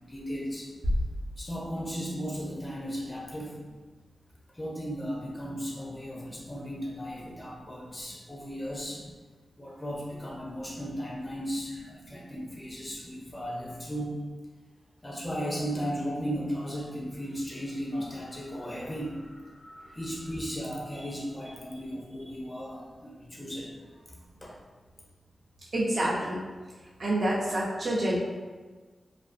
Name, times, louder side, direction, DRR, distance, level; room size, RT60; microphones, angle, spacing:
voice 1, 0.1-0.7 1.4-3.6 4.5-9.0 9.6-14.2 15.0-24.5, equal, 15° left, -4 dB, 0.4 m, -36 dB
sound 1, 0.8-2.6, equal, 90° right, 0.8 m, -33 dB
voice 2, 25.7-26.4 27.0-28.2, right 1 dB, 55° right, -5 dB, 0.4 m, -27 dB
2.4 x 2.3 x 2.4 m, 1.4 s
wide cardioid pair, 120°, 0 cm